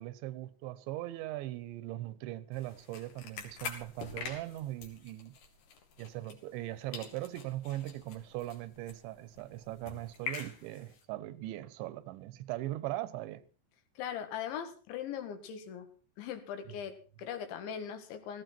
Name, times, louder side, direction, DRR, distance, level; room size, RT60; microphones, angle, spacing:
voice 1, 0.0-5.4 6.0-13.4 16.7-16.8, right 15 dB, 85° right, 3.2 m, -40 dB
sound 1, 2.5-6.7 6.9-11.0, left 6 dB, 60° left, 4.2 m, -46 dB
voice 2, 14.0-15.9 16.2-18.4, left 8 dB, 90° left, 4.2 m, -40 dB
17.5 x 15.5 x 4.4 m
omnidirectional pair, 5.1 m